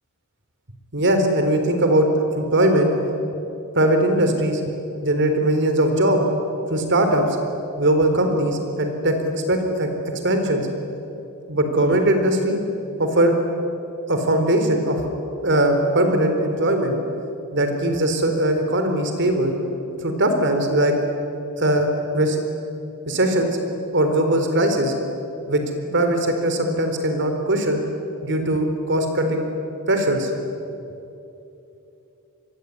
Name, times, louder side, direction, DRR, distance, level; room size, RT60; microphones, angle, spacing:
voice 1, 0.9-2.9 3.7-4.6 5.0-6.2 6.7-7.3 7.8-9.9 10.2-10.7 11.5-12.6 13.0-13.4 14.1-15.0 15.4-17.0 17.5-19.5 20.0-20.9 21.6-21.9 22.1-22.4 23.1-23.6 23.9-24.9 25.5-27.8 28.2-29.5 29.9-30.3, right 1 dB, 55° right, 6 dB, 4.1 m, -20 dB
27.0 x 22.5 x 9.7 m, 2.8 s
head